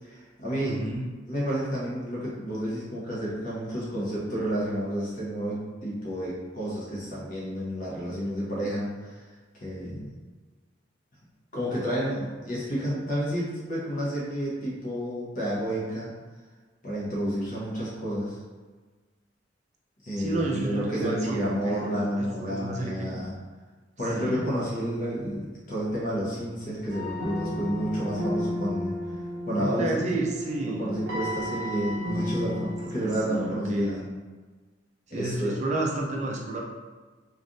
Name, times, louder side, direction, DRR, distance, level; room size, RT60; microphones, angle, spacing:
voice 1, 0.0-0.9 1.3-9.3 9.6-10.1 11.5-16.1 16.8-18.4 20.0-23.3 24.0-28.9 29.5-30.0 30.7-34.0 35.1-35.6, equal, 45° left, -6 dB, 1.0 m, -30 dB
voice 2, 0.7-1.1 20.2-23.1 24.2-24.5 29.6-31.0 33.0-34.1 35.1-36.6, right 2 dB, 40° right, -1 dB, 0.4 m, -31 dB
sound 1, 26.9-33.5, equal, 85° right, 0.6 m, -33 dB
3.3 x 2.4 x 2.6 m, 1.3 s
head